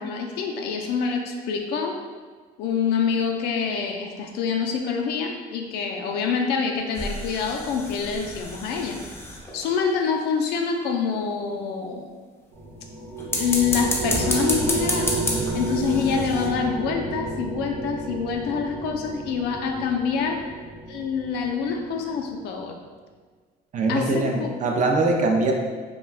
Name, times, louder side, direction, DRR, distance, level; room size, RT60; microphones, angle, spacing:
voice 1, 0.0-2.0 2.6-9.0 9.5-12.1 13.4-15.1 15.5-20.4 20.9-22.7 23.9-24.5, left 6 dB, 80° left, 2 dB, 0.4 m, -26 dB
sound 1, 6.9-9.8 13.2-16.5, left 1 dB, 15° left, 0.4 m, -30 dB
sound 2, 12.5-22.3, right 2 dB, 70° right, 0.9 m, -31 dB
voice 2, 23.7-25.5, right 3 dB, 45° right, 1 dB, 0.4 m, -22 dB
2.3 x 2.2 x 3.2 m, 1.5 s
cardioid pair, 110°, 17 cm